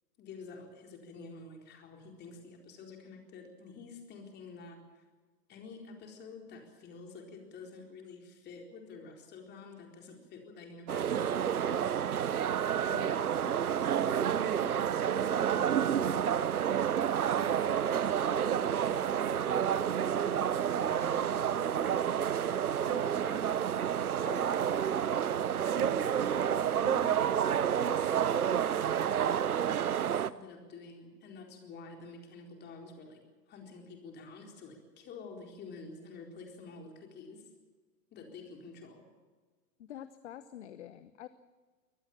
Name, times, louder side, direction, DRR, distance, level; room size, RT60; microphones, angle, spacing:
voice 1, 0.2-4.8 5.5-11.9 12.8-16.4 17.3-22.1 25.6-27.1 27.7-33.2 33.5-37.4 38.1-39.1, left 4 dB, 20° left, 3 dB, 4.3 m, -48 dB
sound 1, 10.9-30.3, right 9 dB, 60° right, 0.9 m, -29 dB
voice 2, 22.8-25.1 39.8-41.3, left 11 dB, 45° left, 14 dB, 1.0 m, -47 dB
23.5 x 18.5 x 7.3 m, 1.4 s
figure-of-eight pair, 115°, 48 cm